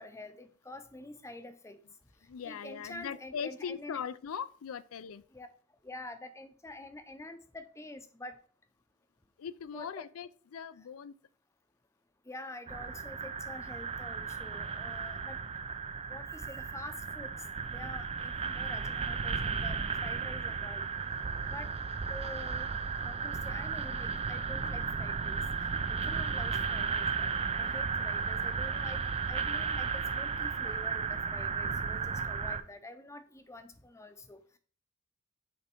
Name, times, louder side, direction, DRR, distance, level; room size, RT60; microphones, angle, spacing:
voice 1, 0.0-1.8 2.4-4.0 5.3-5.5 5.8-8.3 9.7-10.0 12.3-15.4 16.1-20.8 21.5-21.7 22.1-22.7 23.0-27.3 27.6-34.4, left 2 dB, 15° left, 0.7 m, -47 dB
voice 2, 2.3-5.2 9.4-11.2 21.6-21.7, left 7 dB, 70° left, 0.4 m, -40 dB
sound 1, 12.7-32.6, right 5 dB, 30° right, 0.4 m, -34 dB
8.5 x 3.5 x 4.4 m
head